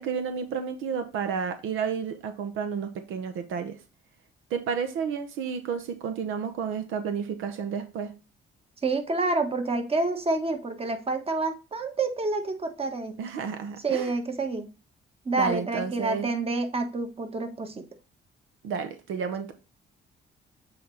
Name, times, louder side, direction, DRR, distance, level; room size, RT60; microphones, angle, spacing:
voice 1, 0.0-3.7 4.5-8.1 13.2-14.1 15.3-16.3 18.6-19.5, right 6 dB, 85° right, 0.9 m, -31 dB
voice 2, 8.8-13.2 13.8-14.7 15.2-17.7, right 3 dB, 30° right, 1.5 m, -28 dB
7.7 x 4.1 x 3.3 m
cardioid pair, 90°, 20 cm